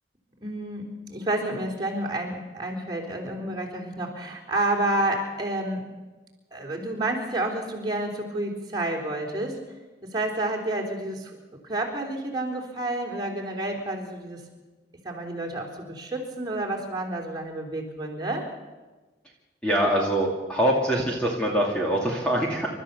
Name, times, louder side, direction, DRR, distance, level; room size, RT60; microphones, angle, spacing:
voice 1, 0.4-5.8 6.5-9.6 10.0-11.4 11.6-14.4 15.0-18.5, right 1 dB, 25° right, -1 dB, 3.7 m, -30 dB
voice 2, 19.6-22.7, right 1 dB, 5° left, -2 dB, 2.4 m, -24 dB
29.0 x 13.0 x 6.9 m, 1.2 s
head